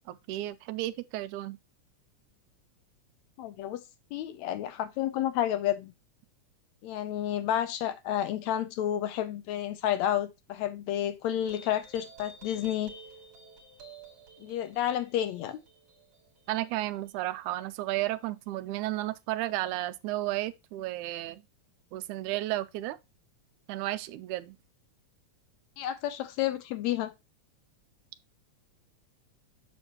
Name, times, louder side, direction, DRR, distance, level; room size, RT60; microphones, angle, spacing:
voice 1, 0.1-1.6 16.5-21.4 21.9-23.0 23.7-24.6, right 16 dB, 85° right, 2.0 m, -33 dB
voice 2, 3.4-3.8 4.1-5.9 6.8-12.9 14.4-15.6 25.8-27.1, left 11 dB, 80° left, 1.8 m, -30 dB
sound 1, 11.4-18.2, right 1 dB, 55° right, 2.4 m, -52 dB
7.3 x 6.1 x 2.9 m
omnidirectional pair, 3.5 m